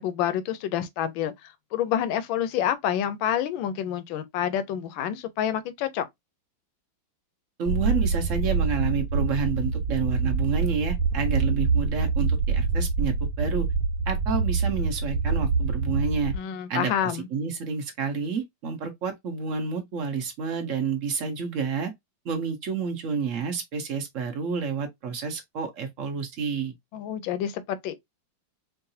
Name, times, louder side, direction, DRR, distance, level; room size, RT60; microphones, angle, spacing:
voice 1, 0.0-1.3 1.7-6.1 16.3-17.3 26.9-27.9, left 10 dB, 80° left, 1.4 m, -28 dB
voice 2, 7.6-13.7 14.1-16.3 16.7-21.9 22.2-26.7, right 6 dB, 50° right, 1.0 m, -29 dB
sound 1, 7.7-16.4, right 4 dB, 80° right, 1.4 m, -25 dB
4.7 x 2.5 x 2.7 m
omnidirectional pair, 2.1 m